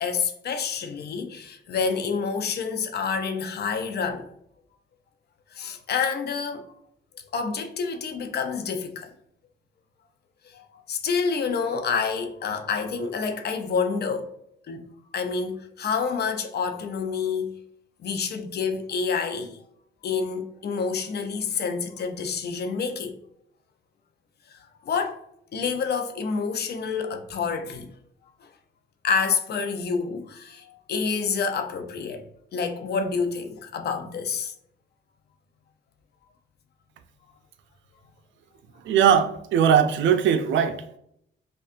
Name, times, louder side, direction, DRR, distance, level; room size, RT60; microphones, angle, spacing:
voice 1, 0.0-4.3 5.5-6.7 7.3-9.1 10.4-14.3 14.7-17.6 18.0-19.6 20.0-23.2 24.5-25.2 25.5-27.9 28.4-28.5 29.0-32.2 32.5-34.5, left 5 dB, 55° left, 0.6 m, -28 dB
voice 2, 38.8-41.0, right 8 dB, 70° right, 0.5 m, -20 dB
5.1 x 2.4 x 2.5 m
cardioid pair, 90°, 20 cm